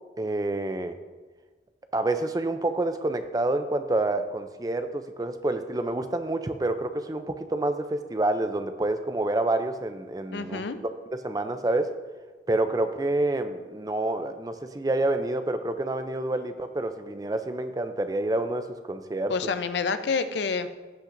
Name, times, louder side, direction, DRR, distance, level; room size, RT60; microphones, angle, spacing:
voice 1, 0.2-1.0 1.9-10.7 11.2-11.9 12.5-19.3, right 2 dB, 20° right, 9 dB, 0.4 m, -28 dB
voice 2, 10.3-10.8 19.3-20.7, left 5 dB, 80° left, 11 dB, 0.6 m, -28 dB
16.0 x 5.7 x 2.6 m, 1.3 s
head